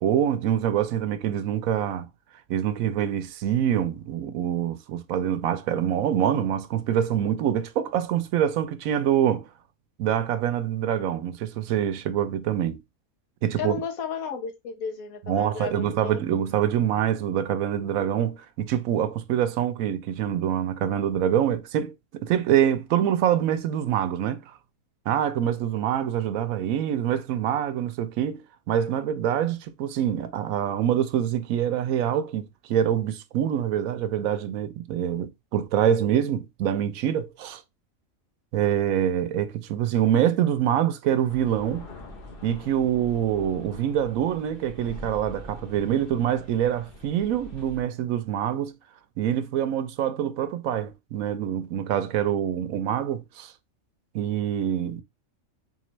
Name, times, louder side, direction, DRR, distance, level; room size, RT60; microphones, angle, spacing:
voice 1, 0.0-2.1 2.5-9.5 10.0-12.8 13.4-13.7 15.3-24.4 25.1-37.6 38.5-41.9 42.4-48.8 49.2-53.5 54.1-55.0, right 10 dB, 80° right, 1.0 m, -25 dB
voice 2, 13.6-16.3, left 6 dB, 90° left, 1.5 m, -34 dB
sound 1, 41.3-47.8, left 1 dB, 45° left, 1.3 m, -44 dB
3.8 x 3.8 x 3.0 m
omnidirectional pair, 1.4 m